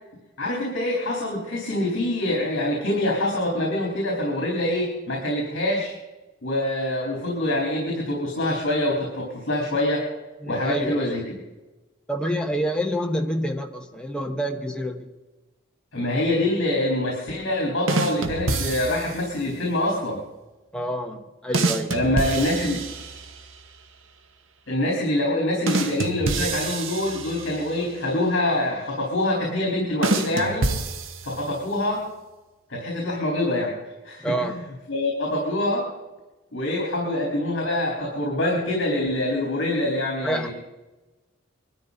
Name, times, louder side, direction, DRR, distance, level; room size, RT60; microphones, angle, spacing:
voice 1, 0.4-6.0 6.4-10.1 10.5-11.2 15.9-20.2 21.9-22.9 24.7-30.7 31.2-32.1 32.7-33.7 34.0-34.6 34.9-35.9 36.5-40.5, left 1 dB, 60° left, -2 dB, 3.9 m, -25 dB
voice 2, 10.4-11.2 12.1-15.1 20.7-22.1 34.2-34.6 40.2-40.5, equal, 5° left, 3 dB, 1.1 m, -28 dB
sound 1, 17.9-19.3 21.5-23.5 25.7-27.8 30.0-31.6, right 2 dB, 80° right, 1.2 m, -27 dB
22.5 x 13.5 x 4.0 m, 1.1 s
head